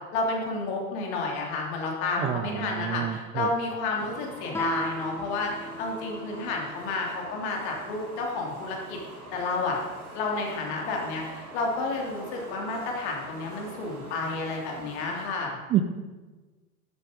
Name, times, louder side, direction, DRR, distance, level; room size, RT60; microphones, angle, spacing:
voice 1, 0.1-9.0 9.3-9.8 10.1-15.6, left 3 dB, 50° left, 0 dB, 3.0 m, -31 dB
voice 2, 2.2-3.5 15.7-15.8, right 12 dB, 15° right, 7 dB, 0.3 m, -28 dB
sound 1, 4.0-15.3, right 2 dB, 90° right, 1.8 m, -44 dB
Guitar, 4.5-7.0, right 1 dB, 5° left, 0.8 m, -36 dB
12.5 x 8.4 x 5.2 m, 1.2 s
figure-of-eight pair, 90°, 42 cm